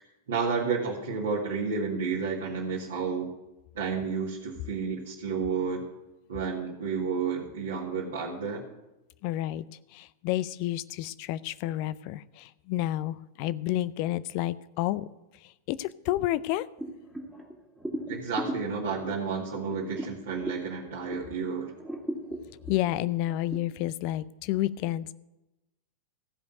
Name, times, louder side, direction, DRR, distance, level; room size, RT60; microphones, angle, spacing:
voice 1, 0.3-3.3 3.7-5.8 6.3-8.7 18.1-21.7, right 5 dB, 60° right, -5 dB, 1.8 m, -31 dB
voice 2, 9.2-9.7 9.9-15.1 15.7-16.7 22.7-25.1, left 14 dB, 45° left, 17 dB, 0.5 m, -30 dB
sound 1, 16.8-21.4 21.7-23.6, right 1 dB, ahead, 1.8 m, -38 dB
15.0 x 5.2 x 9.3 m, 0.97 s
figure-of-eight pair, 90°, 0 cm